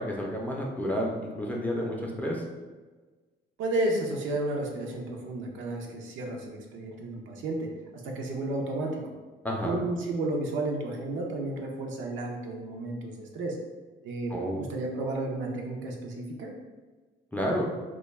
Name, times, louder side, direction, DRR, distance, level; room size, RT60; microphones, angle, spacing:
voice 1, 0.0-2.4 9.4-9.8 14.3-14.6 17.3-17.7, equal, 10° left, -2 dB, 0.5 m, -30 dB
voice 2, 3.6-7.7 8.0-9.0 9.6-13.6 14.0-16.5, right 2 dB, 75° right, 0 dB, 0.5 m, -32 dB
2.2 x 2.2 x 3.1 m, 1.3 s
cardioid pair, 90°, 20 cm